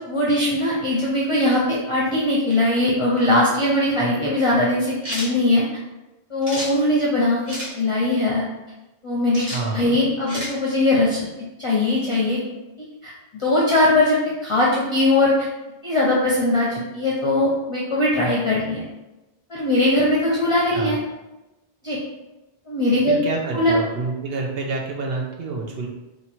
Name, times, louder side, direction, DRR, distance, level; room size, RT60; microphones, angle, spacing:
voice 1, 0.1-5.7 6.3-8.4 9.0-9.4 9.7-11.3 11.6-12.4 13.0-15.5 15.8-18.8 19.5-21.0 21.8-22.0 22.7-23.2 23.5-23.7, left 1 dB, 35° left, -5 dB, 0.6 m, -20 dB
sound 1, 5.0-5.3 6.4-6.7 7.5-7.7 9.3-9.6 10.3-10.5, left 1 dB, 40° right, 1.1 m, -30 dB
voice 2, 9.5-10.0 20.7-21.0 23.1-25.9, right 3 dB, 70° right, 0 dB, 0.9 m, -28 dB
2.9 x 2.6 x 4.2 m, 1.0 s
omnidirectional pair, 1.1 m